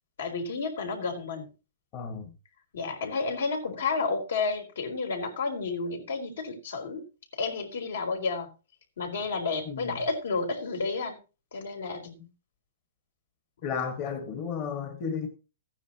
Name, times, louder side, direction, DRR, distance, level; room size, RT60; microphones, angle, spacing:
voice 1, 0.2-1.5 2.7-7.0 7.3-8.5 9.0-11.2 11.5-12.3, left 4 dB, 75° left, 4.1 m, -31 dB
voice 2, 1.9-2.3 9.6-10.0 13.6-15.3, left 6 dB, 35° left, 1.6 m, -33 dB
15.0 x 9.6 x 3.0 m
hypercardioid pair, 150°, 0 cm